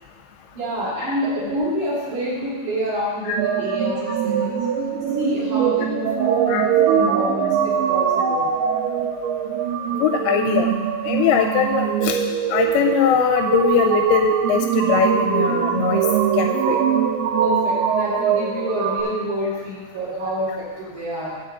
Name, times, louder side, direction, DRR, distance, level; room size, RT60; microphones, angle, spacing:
voice 1, 0.5-4.6 5.1-8.5 17.3-21.4, equal, 50° right, -8 dB, 3.9 m, -27 dB
sound 1, 3.4-19.0, right 8 dB, 85° right, 1.9 m, -22 dB
voice 2, 10.0-10.7 11.1-12.2 12.5-16.0 16.4-16.8, left 9 dB, 85° left, 4 dB, 2.4 m, -21 dB
9.6 x 4.7 x 7.6 m, 1.4 s
omnidirectional pair, 4.9 m